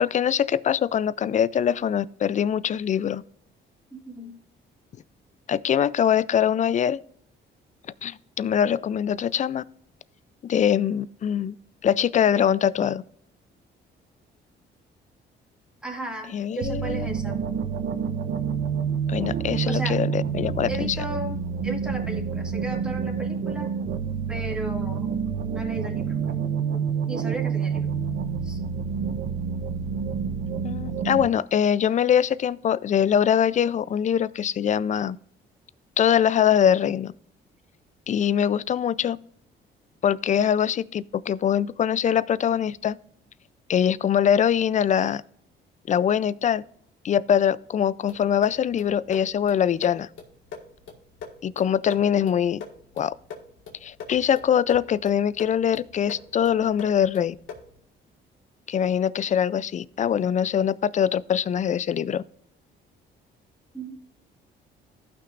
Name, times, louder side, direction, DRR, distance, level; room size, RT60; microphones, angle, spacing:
voice 1, 0.0-3.2 5.5-7.0 8.0-9.6 10.4-11.6 11.8-13.0 16.3-17.1 19.1-21.0 30.6-35.2 36.0-37.1 38.1-39.2 40.0-43.0 43.7-45.2 45.9-46.6 47.0-50.1 51.4-52.6 53.0-53.1 53.8-57.4 58.7-62.2, left 9 dB, 40° left, 0.4 m, -23 dB
voice 2, 3.9-4.3 15.8-17.4 19.7-20.0 20.7-23.7 24.3-25.1 25.5-26.1 26.7-27.9 28.4-28.6 63.7-64.0, right 1 dB, 5° right, 2.1 m, -35 dB
sound 1, 16.6-31.3, right 6 dB, 70° right, 0.7 m, -28 dB
sound 2, 48.1-57.8, left 5 dB, 80° left, 1.7 m, -43 dB
15.0 x 5.9 x 2.5 m
cardioid pair, 90°, 20 cm